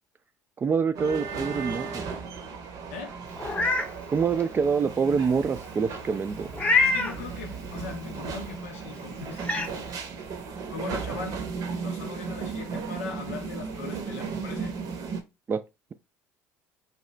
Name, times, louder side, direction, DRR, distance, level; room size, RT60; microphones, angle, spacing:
voice 1, 0.6-2.1 4.1-6.5 15.5-15.6, right 6 dB, 30° right, 0.3 m, -26 dB
sound 1, 0.9-15.2, right 5 dB, 55° right, 0.7 m, -36 dB
Meow, 3.4-3.9 4.4-4.5 6.5-7.2 8.7-8.8 9.4-9.7, left 3 dB, 15° left, 0.7 m, -24 dB
voice 2, 6.8-9.9 10.7-11.4 11.8-14.8, left 5 dB, 85° left, 0.5 m, -39 dB
2.8 x 2.4 x 3.1 m
hypercardioid pair, 65°, 7 cm